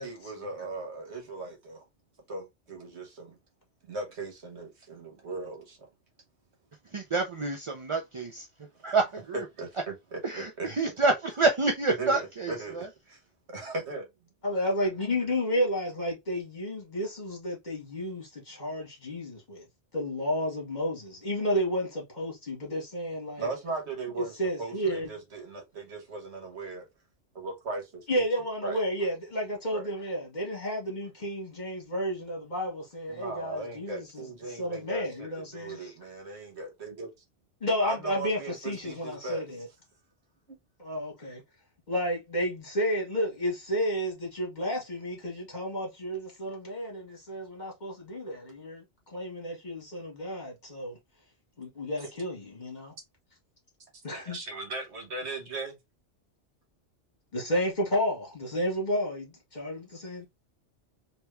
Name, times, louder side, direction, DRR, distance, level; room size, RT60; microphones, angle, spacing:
voice 1, 0.0-1.8 2.3-3.4 3.8-5.9 9.3-10.7 12.0-13.2 13.5-14.1 23.4-24.3 24.6-26.8 27.3-28.1 28.6-28.8 29.7-29.9 33.1-37.1 37.8-39.5 40.5-40.6 54.1-55.8, right 3 dB, 65° right, 1.4 m, -38 dB
voice 2, 6.9-8.5 8.8-9.1 10.2-12.9, right 3 dB, 45° right, 0.4 m, -27 dB
voice 3, 14.4-19.7 19.9-23.5 24.2-25.1 28.1-35.9 37.6-39.7 40.8-41.4 41.9-51.0 51.6-52.9 54.0-54.4 57.3-60.3, equal, 40° left, 1.8 m, -32 dB
3.4 x 3.0 x 3.1 m
omnidirectional pair, 1.2 m